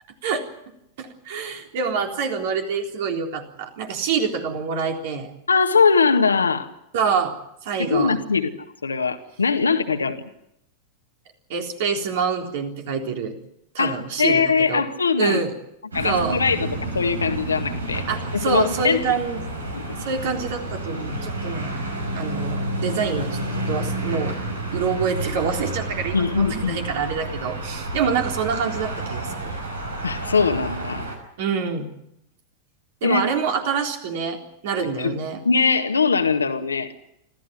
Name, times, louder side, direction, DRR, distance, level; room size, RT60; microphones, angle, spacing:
voice 1, 1.0-5.3 6.9-7.3 7.6-8.2 11.5-13.3 13.7-14.8 15.2-15.5 16.0-16.4 18.1-19.4 20.0-21.7 22.1-24.3 24.7-29.5 31.4-31.9 33.0-35.4, right 6 dB, 50° right, 3 dB, 3.8 m, -26 dB
voice 2, 5.5-6.7 7.9-8.5 8.8-10.2 13.8-15.4 15.9-16.7 16.9-18.1 18.3-19.1 19.7-19.9 26.1-26.8 30.0-31.1 33.0-33.3 35.0-35.2 35.5-36.9, left 5 dB, 75° left, 7 dB, 1.9 m, -21 dB
sound 1, 15.9-31.2, right 2 dB, 80° right, 5.4 m, -30 dB
25.5 x 15.0 x 9.8 m, 0.80 s
figure-of-eight pair, 90°, 0 cm